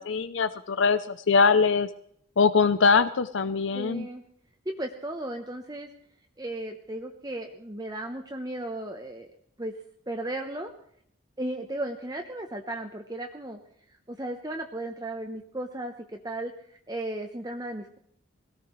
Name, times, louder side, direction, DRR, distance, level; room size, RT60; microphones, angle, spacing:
voice 1, 0.0-1.9 2.4-4.1, left 5 dB, 65° left, 12 dB, 0.5 m, -22 dB
voice 2, 3.7-4.2 4.6-5.9 6.4-9.3 9.6-9.7 10.1-10.7 11.4-13.6 14.1-18.0, right 1 dB, 20° right, 4 dB, 0.8 m, -35 dB
21.0 x 18.0 x 3.2 m, 0.66 s
head